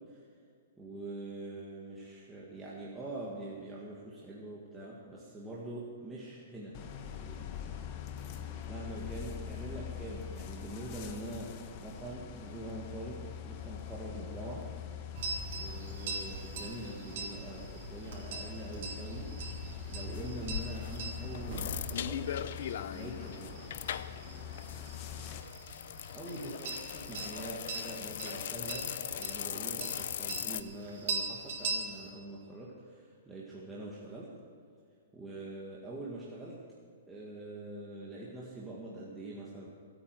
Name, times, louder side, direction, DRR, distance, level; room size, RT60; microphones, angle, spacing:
voice 1, 0.8-7.8 8.7-14.7 15.5-19.3 19.9-22.3 22.9-23.6 26.1-34.3 35.1-36.6 37.1-39.7, right 2 dB, 10° right, -6 dB, 1.7 m, -44 dB
sound 1, 6.7-25.4, left 9 dB, 35° left, 1.2 m, -44 dB
sound 2, 15.2-32.1, right 3 dB, 55° right, 3.6 m, -42 dB
sound 3, 20.1-30.6, left 10 dB, 60° left, 0.6 m, -40 dB
25.0 x 9.0 x 4.7 m, 2.3 s
hypercardioid pair, 160°, 0 cm